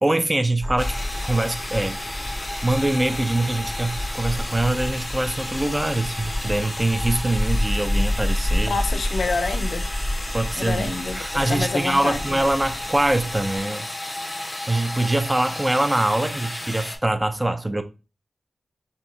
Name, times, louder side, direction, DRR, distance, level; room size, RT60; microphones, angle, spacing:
voice 1, 0.0-0.9 1.2-2.0 2.6-8.7 10.3-13.9 14.7-17.8, right 1 dB, 25° right, 0.4 m, -23 dB
sound 1, 0.6-13.6, left 1 dB, 40° right, 1.3 m, -29 dB
sound 2, 0.8-17.0, left 1 dB, 20° left, 0.7 m, -33 dB
voice 2, 8.6-9.9 10.6-12.4, left 3 dB, 75° left, 0.4 m, -28 dB
3.9 x 2.7 x 2.3 m
cardioid pair, 45°, 0 cm